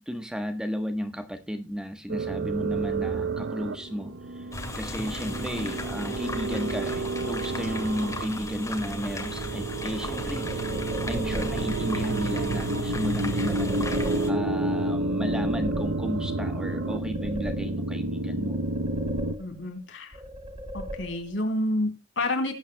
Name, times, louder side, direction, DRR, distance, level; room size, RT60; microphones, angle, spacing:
voice 1, 0.0-10.8 11.1-13.9 14.3-18.6, equal, 5° right, 1.1 m, -33 dB
sound 1, 2.1-19.3, right 2 dB, 80° right, 0.8 m, -30 dB
sound 2, 4.5-14.3, left 2 dB, 15° left, 2.0 m, -36 dB
sound 3, 9.8-11.8 13.3-14.6 15.0-16.3 16.7-18.1 18.4-19.8 20.1-21.5, equal, 35° right, 3.9 m, -39 dB
voice 2, 19.4-20.2 20.7-22.5, left 1 dB, 80° left, 3.0 m, -29 dB
19.0 x 9.0 x 2.2 m
head